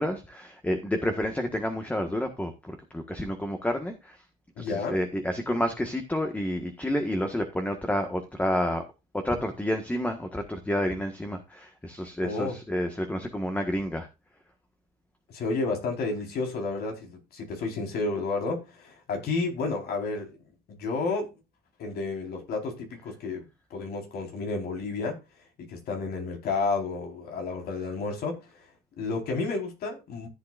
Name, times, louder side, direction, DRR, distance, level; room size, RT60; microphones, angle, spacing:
voice 1, 0.0-4.2 4.6-8.8 9.2-14.1, equal, 10° left, 1.5 m, -29 dB
voice 2, 4.6-5.0 12.2-12.6 15.3-20.4 20.7-21.3 21.8-25.2 25.6-28.4 28.9-30.3, left 3 dB, 70° left, 4.4 m, -31 dB
14.5 x 7.8 x 2.5 m
cardioid pair, 110°, 17 cm